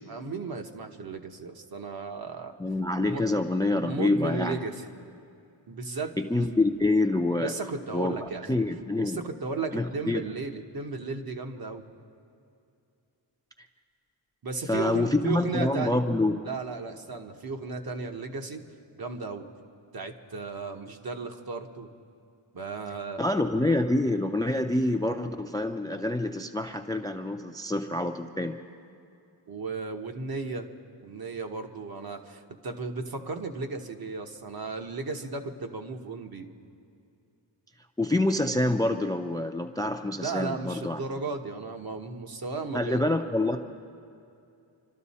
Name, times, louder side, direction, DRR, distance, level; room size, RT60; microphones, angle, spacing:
voice 1, 0.1-2.6 3.0-3.2 3.8-4.8 5.7-6.5 7.4-8.5 9.0-11.8 14.4-16.0 16.4-18.6 19.0-19.5 19.9-21.9 22.5-23.3 29.5-30.7 31.0-36.5 40.2-43.0, right 4 dB, 50° right, 5 dB, 1.1 m, -35 dB
voice 2, 2.6-4.6 6.2-7.5 7.9-9.2 9.7-10.2 14.7-16.4 23.2-28.6 38.0-41.0 42.7-43.6, left 2 dB, 10° left, 6 dB, 0.4 m, -26 dB
27.0 x 13.0 x 4.2 m, 2.5 s
wide cardioid pair, 160°, 46 cm